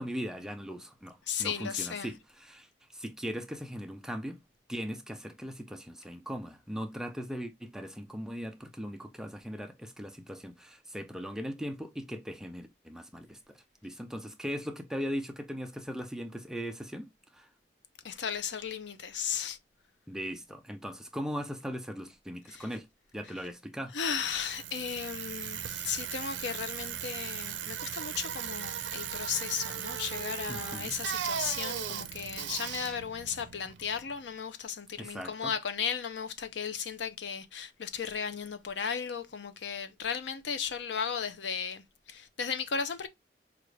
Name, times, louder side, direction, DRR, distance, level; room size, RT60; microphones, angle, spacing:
voice 1, 0.0-2.7 2.9-4.4 4.7-13.4 13.8-17.1 17.3-17.5 20.1-22.9 23.1-23.9 30.5-31.0 35.0-35.5, equal, 5° right, 0.5 m, -39 dB
voice 2, 1.3-2.1 18.0-19.6 22.5-22.7 23.9-43.1, left 7 dB, 80° left, 0.6 m, -35 dB
Bicycle, 24.1-34.2, right 9 dB, 80° right, 0.5 m, -37 dB
4.8 x 2.5 x 3.2 m
head